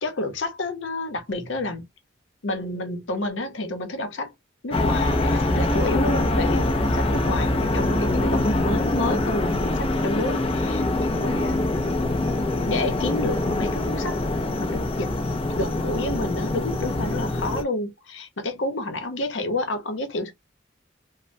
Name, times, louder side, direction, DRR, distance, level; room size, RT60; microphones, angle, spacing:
voice 1, 0.0-1.9 2.4-4.3 4.6-11.6 12.6-14.2 14.6-15.1 15.6-20.3, left 2 dB, 75° left, 0.8 m, -29 dB
sound 1, 4.7-17.6, left 1 dB, 30° left, 0.5 m, -24 dB
3.1 x 2.1 x 2.5 m
head